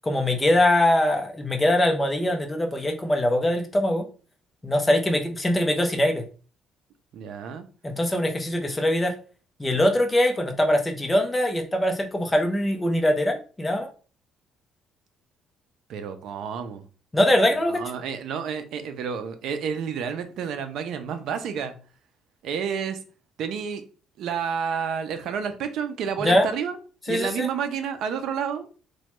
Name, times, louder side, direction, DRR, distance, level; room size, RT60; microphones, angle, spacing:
voice 1, 0.0-4.0 4.6-6.2 7.8-9.1 9.6-13.9 17.1-17.8 26.2-26.5 27.1-27.5, left 1 dB, 10° left, 3 dB, 0.5 m, -22 dB
voice 2, 7.1-7.6 15.9-16.8 17.7-21.7 22.4-23.0 23.4-23.8 24.2-26.8 27.1-28.7, right 7 dB, 65° right, 8 dB, 0.4 m, -30 dB
3.0 x 2.2 x 3.0 m, 0.37 s
cardioid pair, 135°, 0 cm